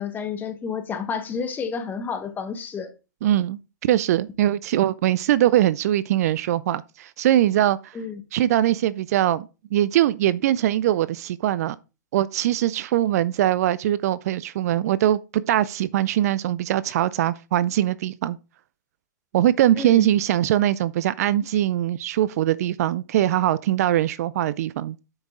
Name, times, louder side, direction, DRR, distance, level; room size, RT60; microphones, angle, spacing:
voice 1, 0.0-2.9 7.9-8.2 19.7-20.1, left 6 dB, 20° left, 1.3 m, -30 dB
voice 2, 3.2-7.9 8.3-11.8 12.1-18.4 19.3-25.0, right 12 dB, 55° right, 0.4 m, -22 dB
7.9 x 6.0 x 3.7 m
hypercardioid pair, 125°, 10 cm